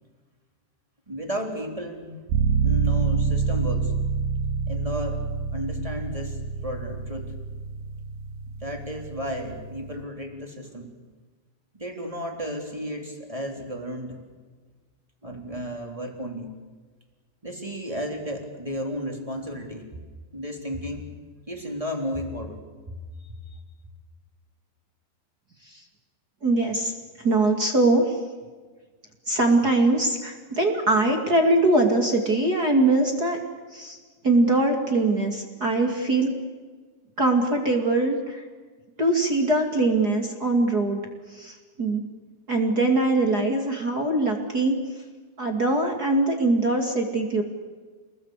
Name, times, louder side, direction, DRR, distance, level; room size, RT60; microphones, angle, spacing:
voice 1, 1.1-2.2 2.5-3.9 4.7-5.2 5.5-6.4 6.6-7.3 8.6-10.9 11.7-14.2 15.2-16.5 17.4-19.9 20.3-21.1 21.5-22.6 23.2-23.3, equal, 10° right, 3 dB, 2.7 m, -33 dB
sound 1, 2.3-10.0, right 5 dB, 65° right, 3.8 m, -27 dB
voice 2, 26.4-26.9 27.2-28.2 29.3-33.4 33.7-34.0 34.2-36.3 37.2-38.5 39.0-41.0 41.3-42.0 42.5-44.7 45.4-47.4, right 2 dB, 30° right, 3 dB, 1.8 m, -22 dB
29.0 x 20.5 x 8.3 m, 1.4 s
omnidirectional pair, 5.3 m